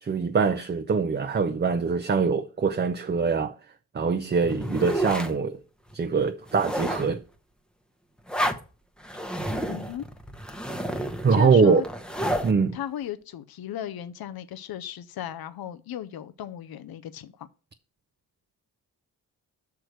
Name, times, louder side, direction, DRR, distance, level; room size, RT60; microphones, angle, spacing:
voice 1, 0.0-3.5 3.9-5.6 5.9-7.2 11.2-11.8 12.4-12.8, right 5 dB, 30° right, 0.6 m, -23 dB
sound 1, 4.4-5.4 5.9-6.0 6.4-7.2 8.3-8.6 9.0-12.5, equal, ahead, 0.9 m, -30 dB
voice 2, 9.7-10.1 11.3-11.8 12.7-17.5, left 11 dB, 75° left, 0.7 m, -36 dB
6.3 x 4.6 x 6.6 m
cardioid pair, 90°, 37 cm